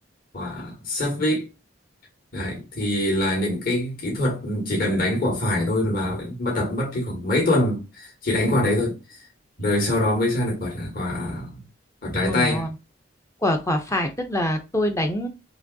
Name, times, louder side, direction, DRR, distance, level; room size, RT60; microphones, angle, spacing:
voice 1, 0.3-1.5 2.3-9.0 9.6-11.6 12.0-12.6, left 1 dB, 50° left, 2.0 m, -24 dB
voice 2, 12.3-12.7 13.4-15.3, left 1 dB, 15° left, 0.6 m, -24 dB
4.8 x 3.1 x 2.7 m
head